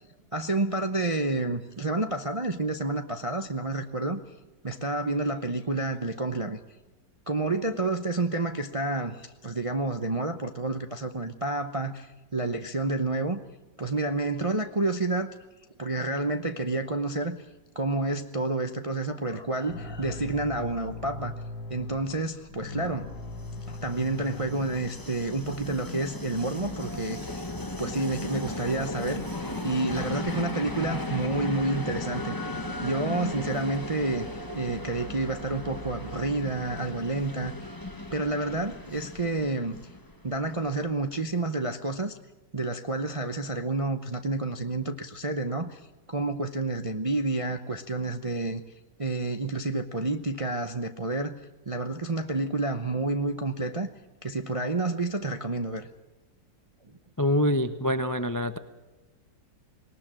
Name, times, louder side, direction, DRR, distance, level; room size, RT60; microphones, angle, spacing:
voice 1, 0.3-4.2 4.6-6.6 7.3-13.4 13.8-15.3 15.8-17.4 17.7-21.3 21.7-23.1 23.7-27.5 27.8-29.3 29.6-32.4 32.8-37.5 38.1-39.7 40.2-42.2 42.5-45.8 46.1-48.6 49.0-51.3 51.7-53.9 54.2-55.9, right 2 dB, 40° right, 7 dB, 0.4 m, -29 dB
sound 1, 19.7-24.8, left 3 dB, 60° left, 2.1 m, -39 dB
Train, 23.1-40.9, left 1 dB, 15° left, 1.3 m, -36 dB
voice 2, 57.2-58.6, equal, 30° left, 10 dB, 0.3 m, -25 dB
20.0 x 19.5 x 7.5 m, 1.1 s
omnidirectional pair, 2.0 m